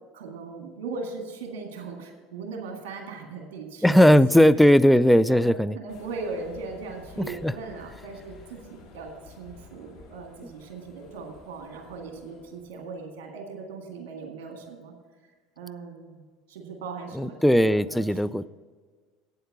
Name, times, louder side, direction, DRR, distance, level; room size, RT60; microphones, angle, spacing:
voice 1, 0.1-4.5 4.9-5.0 5.3-14.9 15.6-16.2 16.5-18.1, right 4 dB, 65° right, 2 dB, 1.8 m, -38 dB
voice 2, 3.8-5.7 7.2-7.5 17.1-18.5, equal, 5° left, 15 dB, 0.3 m, -18 dB
sound 1, 5.9-12.8, left 5 dB, 60° left, 1.8 m, -50 dB
8.5 x 7.8 x 7.0 m, 1.5 s
hypercardioid pair, 70°, 0 cm